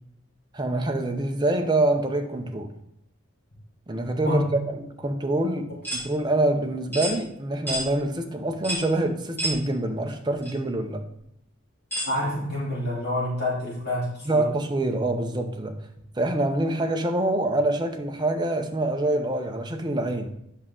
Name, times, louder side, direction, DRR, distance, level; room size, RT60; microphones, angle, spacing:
voice 1, 0.5-2.7 3.9-11.0 14.3-15.8 16.2-20.3, right 1 dB, 20° right, 0.6 m, -25 dB
voice 2, 4.2-4.6 12.1-14.4, left 1 dB, 50° left, 3.1 m, -28 dB
sound 1, 5.8-6.1 6.9-7.2 7.7-7.9 8.6-8.9 9.4-9.6 10.4-10.5 11.9-12.1, right 1 dB, 10° left, 2.3 m, -29 dB
8.2 x 6.0 x 3.7 m
head